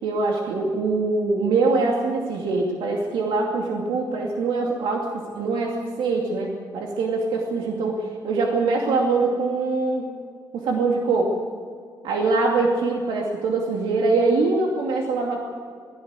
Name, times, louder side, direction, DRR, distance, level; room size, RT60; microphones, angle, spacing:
voice 1, 0.0-10.1 10.5-11.3 12.0-15.4, right 3 dB, 90° right, -1 dB, 2.6 m, -23 dB
21.0 x 16.5 x 8.2 m, 2.1 s
cardioid pair, 145°, 8 cm